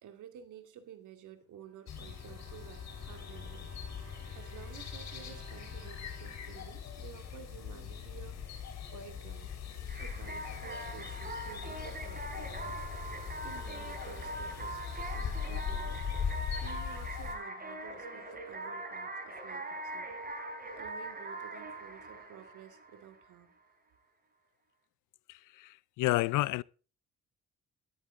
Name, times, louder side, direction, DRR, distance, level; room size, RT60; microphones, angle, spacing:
voice 1, 0.0-3.7 4.3-8.5 8.9-9.5 10.0-12.8 13.4-14.8 15.1-16.0 16.6-20.1 20.8-23.5, right 9 dB, 80° right, 2.4 m, -52 dB
Bowed string instrument, 1.4-7.7 8.3-8.4 8.7-8.9, right 5 dB, 50° right, 4.0 m, -58 dB
sound 1, 1.9-17.4, left 7 dB, 60° left, 4.8 m, -40 dB
sound 2, 9.9-23.3, right 2 dB, 30° right, 4.0 m, -42 dB
voice 2, 25.6-26.6, left 18 dB, 85° left, 0.6 m, -29 dB
13.0 x 12.5 x 3.8 m
cardioid pair, 90°, 30 cm